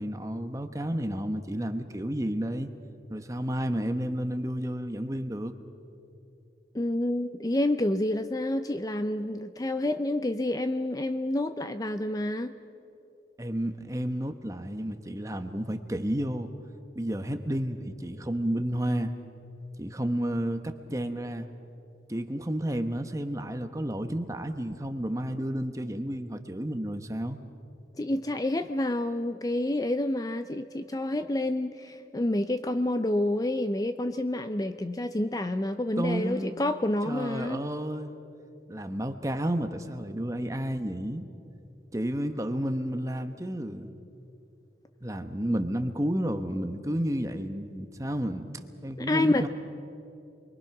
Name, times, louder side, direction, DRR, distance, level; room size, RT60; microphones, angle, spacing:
voice 1, 0.0-2.7 3.1-5.6 13.4-16.5 16.9-19.1 19.8-21.5 22.1-27.4 36.0-36.6 37.1-38.1 38.7-41.2 41.9-43.9 45.0-49.5, right 1 dB, 20° right, 7 dB, 1.0 m, -31 dB
voice 2, 6.7-12.5 28.0-37.6 49.0-49.5, left 1 dB, 20° left, 10 dB, 0.5 m, -28 dB
28.0 x 22.5 x 6.0 m, 2.8 s
head